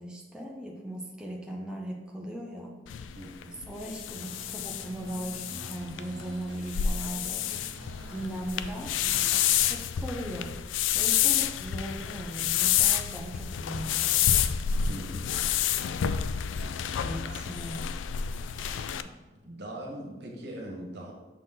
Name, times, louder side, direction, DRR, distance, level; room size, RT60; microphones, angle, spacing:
voice 1, 0.0-2.8 3.5-7.5 8.1-9.0 9.7-10.6 10.9-14.3 17.0-17.9, right 1 dB, 5° right, -2 dB, 0.6 m, -38 dB
sound 1, 2.9-19.0, left 9 dB, 85° left, 0.3 m, -29 dB
voice 2, 3.1-3.7 14.9-15.3 17.2-17.6 18.5-19.1 19.4-21.1, right 1 dB, 65° right, -1 dB, 1.4 m, -42 dB
sound 2, 4.2-9.5, right 1 dB, 85° right, 0.8 m, -47 dB
6.4 x 4.1 x 3.8 m, 1.2 s
head